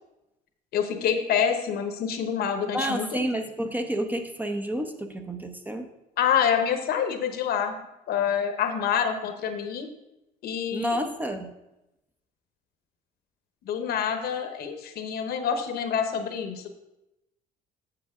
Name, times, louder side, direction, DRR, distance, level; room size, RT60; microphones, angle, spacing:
voice 1, 0.7-3.1 6.2-7.8 8.1-9.9 10.4-11.1 13.6-16.7, left 8 dB, 70° left, 7 dB, 1.0 m, -27 dB
voice 2, 2.7-5.9 10.7-11.5, equal, 10° right, 6 dB, 0.6 m, -30 dB
7.7 x 7.2 x 3.7 m, 0.92 s
cardioid pair, 110°, 17 cm